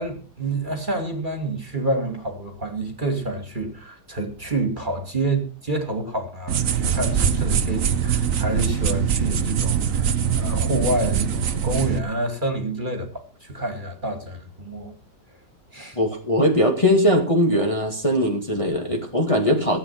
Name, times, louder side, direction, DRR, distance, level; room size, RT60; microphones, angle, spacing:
voice 1, 0.0-15.0 15.7-16.0, right 2 dB, 30° right, 2.7 m, -28 dB
sound 1, 6.5-12.0, right 8 dB, 55° right, 1.3 m, -23 dB
voice 2, 15.9-19.8, equal, 20° left, 2.1 m, -20 dB
16.0 x 9.0 x 5.9 m
omnidirectional pair, 1.8 m